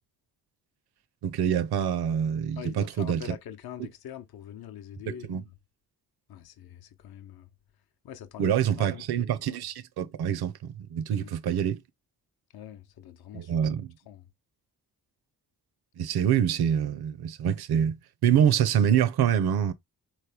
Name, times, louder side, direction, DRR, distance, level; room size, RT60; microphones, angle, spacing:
voice 1, 1.2-3.2 3.8-3.9 5.1-5.4 8.4-11.8 13.3-13.9 16.0-19.7, right 9 dB, 70° right, 0.7 m, -26 dB
voice 2, 2.6-5.4 6.3-7.5 8.0-9.0 11.1-11.3 12.5-13.5 14.1-14.3, left 10 dB, 65° left, 0.7 m, -43 dB
4.2 x 3.1 x 3.4 m
wide cardioid pair, 145°, 39 cm